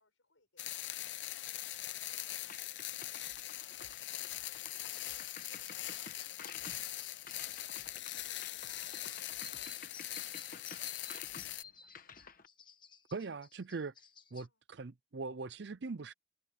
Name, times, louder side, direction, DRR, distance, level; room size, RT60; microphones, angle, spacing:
voice 1, 0.0-2.7 3.5-3.8 4.1-12.3 14.4-14.6, left 3 dB, 80° left, 7.2 m, -71 dB
sound 1, 0.6-11.6, left 14 dB, 65° left, 0.7 m, -42 dB
sound 2, 2.4-12.5, left 5 dB, 45° left, 1.4 m, -53 dB
sound 3, 4.9-14.5, left 5 dB, 25° left, 1.6 m, -56 dB
voice 2, 13.1-13.9 14.3-16.1, right 4 dB, 55° right, 0.5 m, -41 dB
head